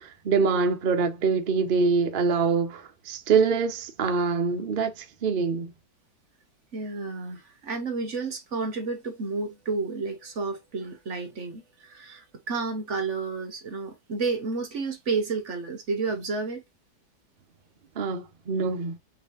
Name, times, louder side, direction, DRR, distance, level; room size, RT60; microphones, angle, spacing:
voice 1, 0.0-5.7 18.0-19.0, right 5 dB, 65° right, 0.5 m, -25 dB
voice 2, 6.7-16.6, right 4 dB, 50° right, 0.9 m, -31 dB
5.4 x 3.7 x 2.4 m
omnidirectional pair, 2.1 m